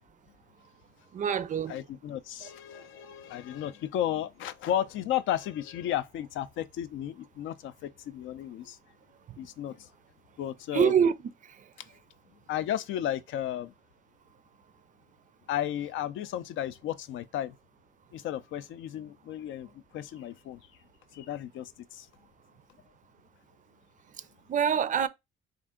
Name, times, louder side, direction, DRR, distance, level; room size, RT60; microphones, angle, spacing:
voice 1, 1.1-1.8 10.7-11.1 24.5-25.1, right 8 dB, 40° right, 0.4 m, -24 dB
voice 2, 1.7-8.8 9.4-9.9 10.4-11.1 12.5-13.7 15.5-17.6 18.1-20.6 21.1-22.1, left 11 dB, 75° left, 0.4 m, -34 dB
3.6 x 2.5 x 3.6 m
cardioid pair, 90°, 20 cm